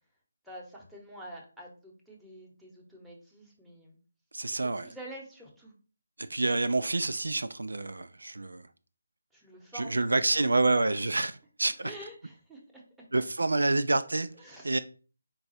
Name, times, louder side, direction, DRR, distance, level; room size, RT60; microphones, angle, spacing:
voice 1, 0.4-4.0 4.6-5.7 9.3-10.4 11.8-13.1 14.4-14.8, right 1 dB, ahead, 0.9 m, -47 dB
voice 2, 4.3-4.9 6.2-8.7 9.7-11.9 13.1-14.3 14.6-14.8, right 2 dB, 80° right, 0.3 m, -28 dB
4.7 x 2.3 x 4.1 m
figure-of-eight pair, 155°, 0 cm